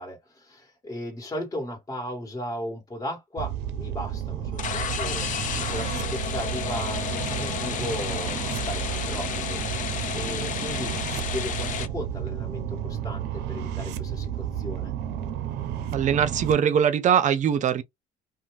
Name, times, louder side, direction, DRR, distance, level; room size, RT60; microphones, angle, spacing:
voice 1, 0.0-9.6 10.1-14.9, left 1 dB, 20° left, 1.5 m, -36 dB
sound 1, 3.4-16.5, right 10 dB, 85° right, 0.6 m, -32 dB
sound 2, 4.5-11.9, left 7 dB, 50° left, 0.6 m, -31 dB
voice 2, 15.9-17.8, right 8 dB, 45° right, 0.6 m, -21 dB
2.7 x 2.1 x 3.1 m
cardioid pair, 110°, 17 cm